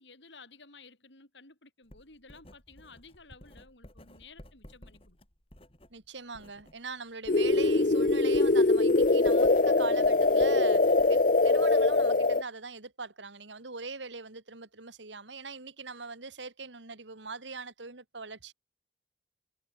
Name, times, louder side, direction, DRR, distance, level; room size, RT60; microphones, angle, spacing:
voice 1, 0.0-5.2, left 4 dB, 80° left, 7.6 m, -54 dB
Writing, 1.9-6.8 7.1-11.7, equal, 30° left, 4.6 m, -54 dB
voice 2, 5.9-18.5, right 4 dB, 90° right, 2.5 m, -41 dB
sound 1, 7.3-12.4, left 3 dB, 45° left, 0.7 m, -23 dB
head